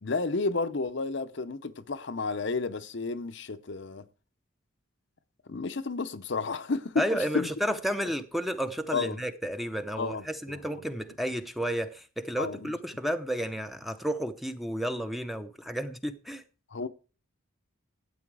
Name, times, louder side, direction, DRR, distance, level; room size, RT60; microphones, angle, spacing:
voice 1, 0.0-4.0 5.5-7.1 7.3-7.5 8.9-9.2 10.0-10.6 12.4-12.7 16.7-16.9, left 3 dB, 55° left, 0.7 m, -31 dB
voice 2, 7.0-16.4, equal, ahead, 0.7 m, -32 dB
12.5 x 8.7 x 4.7 m
head